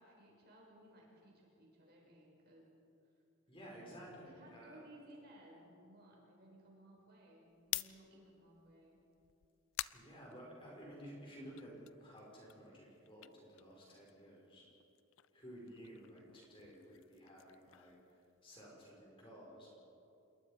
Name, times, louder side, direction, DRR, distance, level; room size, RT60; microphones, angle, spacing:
voice 1, 0.0-2.7 4.2-9.0, right 1 dB, 45° right, -2 dB, 6.3 m, -60 dB
voice 2, 3.5-4.9 9.9-14.7 15.3-19.7, equal, 25° left, -3 dB, 5.7 m, -54 dB
sound 1, 7.5-11.0 11.4-14.4 14.7-18.8, left 15 dB, 70° left, 0.5 m, -49 dB
27.5 x 22.0 x 5.2 m, 2.7 s
head